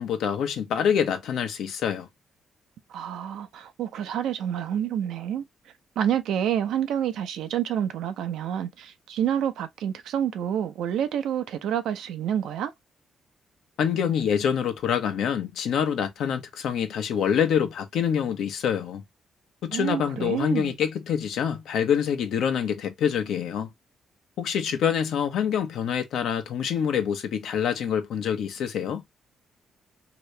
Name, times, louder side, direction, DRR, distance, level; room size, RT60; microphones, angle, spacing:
voice 1, 0.0-2.1 13.8-19.0 19.6-23.7 24.4-29.0, left 8 dB, 80° left, 0.8 m, -26 dB
voice 2, 2.9-5.4 6.0-12.7 19.7-20.7, right 9 dB, 85° right, 0.6 m, -28 dB
2.9 x 2.8 x 3.2 m
cardioid pair, 85°, 0 cm